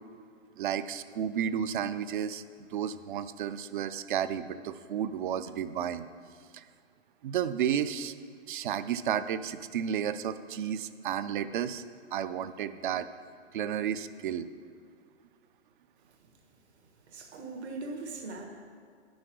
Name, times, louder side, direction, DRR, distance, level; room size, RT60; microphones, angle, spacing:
voice 1, 0.6-6.1 6.5-6.7 7.2-8.1 8.5-11.8 12.1-13.1 13.5-14.5, right 9 dB, 50° right, 12 dB, 0.5 m, -32 dB
voice 2, 17.1-18.4, right 3 dB, 70° right, 2 dB, 1.7 m, -40 dB
9.1 x 6.3 x 6.2 m, 2.2 s
hypercardioid pair, 140°, 34 cm